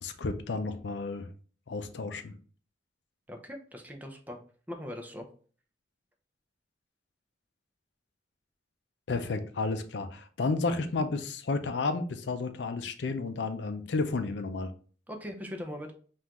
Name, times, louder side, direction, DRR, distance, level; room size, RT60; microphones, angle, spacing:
voice 1, 0.0-1.3 1.7-2.3 9.1-14.7, left 3 dB, 75° left, 8 dB, 0.5 m, -32 dB
voice 2, 3.3-4.4 4.7-5.3 15.1-15.9, left 1 dB, 10° right, 3 dB, 0.6 m, -40 dB
5.5 x 2.5 x 2.9 m, 0.42 s
head